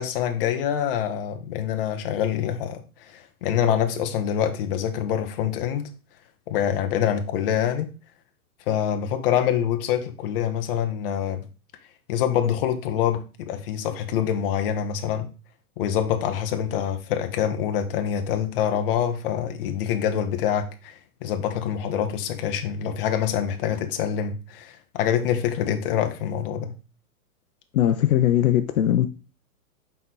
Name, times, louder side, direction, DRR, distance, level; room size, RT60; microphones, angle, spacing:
voice 1, 0.0-5.9 6.5-7.9 8.7-11.5 12.1-15.3 15.8-26.7, left 9 dB, 40° left, 0.9 m, -25 dB
voice 2, 27.7-29.1, left 12 dB, 70° left, 0.7 m, -20 dB
5.8 x 4.5 x 4.0 m
hypercardioid pair, 155°, 44 cm